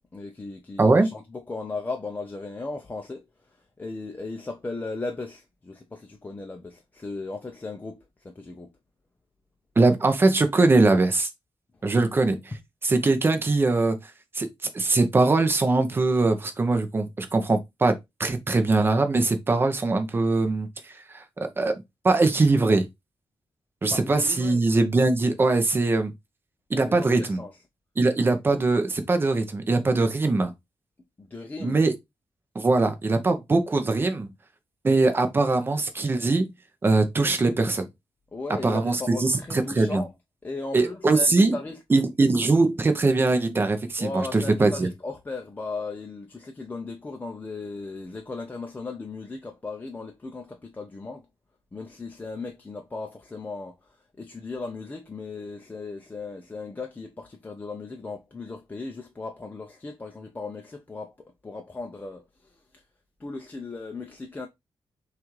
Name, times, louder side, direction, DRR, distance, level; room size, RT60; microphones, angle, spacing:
voice 1, 0.1-8.7 11.8-11.9 23.9-24.6 26.8-27.6 31.2-31.8 38.3-40.1 40.4-41.8 44.0-51.2 51.7-62.8 63.2-64.5, left 3 dB, 20° left, 0.4 m, -37 dB
voice 2, 9.8-11.3 11.8-12.4 12.8-14.0 14.3-14.5 14.7-17.9 18.2-21.2 21.6-21.7 22.0-22.9 23.8-26.1 26.7-27.4 28.0-30.5 31.6-31.9 32.5-34.3 34.8-36.5 36.8-37.9 38.6-40.0 40.7-41.6 41.9-44.9, right 3 dB, 25° right, 0.6 m, -22 dB
6.0 x 2.4 x 3.1 m
wide cardioid pair, 180°, 9 cm